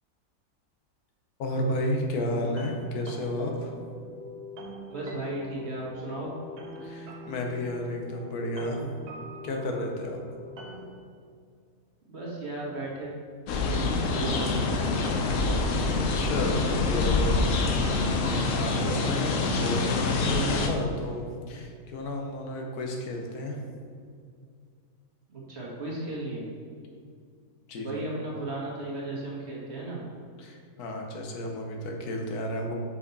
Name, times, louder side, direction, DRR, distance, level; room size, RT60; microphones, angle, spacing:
voice 1, 1.4-3.7 6.8-8.9 9.4-10.2 16.0-17.4 18.3-23.7 27.7-28.0 30.4-32.7, left 1 dB, 80° left, 2 dB, 1.4 m, -32 dB
sound 1, 1.5-10.9, left 1 dB, 90° right, 1.4 m, -43 dB
voice 2, 4.9-6.3 12.1-13.1 13.6-14.6 25.3-26.5 27.8-30.0, right 2 dB, 45° right, -5 dB, 1.6 m, -35 dB
sound 2, 13.5-20.7, left 3 dB, 65° left, 0.9 m, -26 dB
5.6 x 5.2 x 4.0 m, 2.2 s
omnidirectional pair, 1.6 m